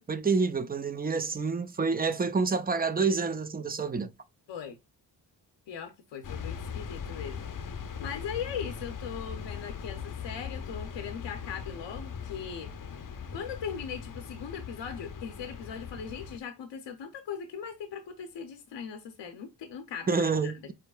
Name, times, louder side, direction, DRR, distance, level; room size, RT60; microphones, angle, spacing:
voice 1, 0.1-4.1 20.1-20.7, right 4 dB, 20° right, 0.5 m, -28 dB
voice 2, 5.7-7.7 8.0-12.7 13.3-20.5, left 7 dB, 85° left, 0.8 m, -39 dB
sound 1, 6.2-16.4, left 6 dB, 50° left, 0.7 m, -40 dB
5.0 x 4.5 x 2.4 m
cardioid pair, 70°, 43 cm